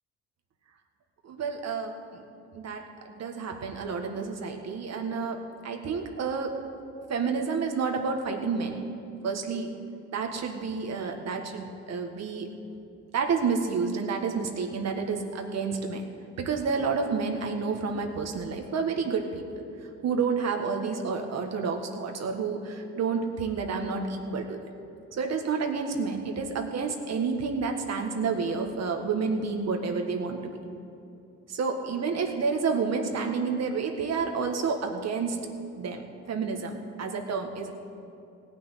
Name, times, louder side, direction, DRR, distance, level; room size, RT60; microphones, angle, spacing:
voice 1, 1.2-2.3 2.5-6.5 7.1-8.8 9.2-9.8 10.1-12.5 13.1-16.1 16.4-19.4 20.0-24.6 25.1-30.5 31.5-35.5 35.8-37.7, right 5 dB, 60° right, 3 dB, 1.7 m, -30 dB
17.5 x 6.2 x 9.1 m, 2.7 s
cardioid pair, 90°, 30 cm